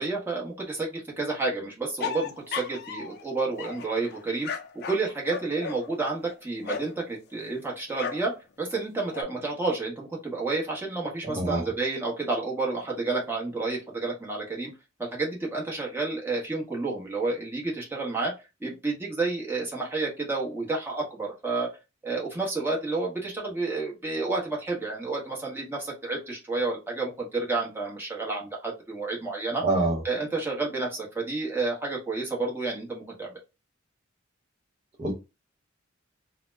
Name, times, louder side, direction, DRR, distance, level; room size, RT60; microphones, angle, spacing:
voice 1, 0.0-4.5 4.9-8.3 8.6-14.7 15.0-18.3 18.6-21.7 22.0-29.6 30.0-33.4, right 3 dB, 10° right, -3 dB, 1.0 m, -30 dB
sound 1, 2.0-3.2 3.6-7.0 7.9-8.3 8.7-9.2, left 6 dB, 55° left, 0.4 m, -36 dB
voice 2, 11.2-11.7 29.6-30.0 35.0-35.1, right 2 dB, 30° right, -4 dB, 0.7 m, -25 dB
2.8 x 2.1 x 3.3 m, 0.27 s
head